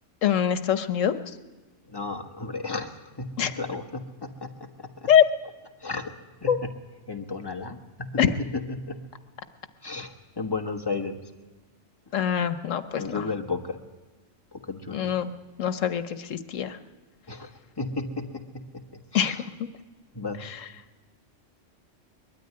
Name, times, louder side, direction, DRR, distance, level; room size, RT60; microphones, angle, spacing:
voice 1, 0.2-1.1 3.4-3.5 5.1-5.2 6.5-6.6 8.2-8.3 12.1-13.2 14.9-15.3 15.6-16.8 19.1-19.4, left 9 dB, 85° left, 10 dB, 1.3 m, -23 dB
voice 2, 1.9-5.1 5.8-6.1 6.4-6.6 7.1-9.1 9.8-11.2 12.1-12.3 12.9-13.8 14.5-15.1 17.3-17.5 17.8-19.5 20.1-20.5, left 3 dB, 20° left, 3 dB, 1.4 m, -34 dB
21.0 x 13.0 x 9.6 m, 1.2 s
omnidirectional pair, 1.3 m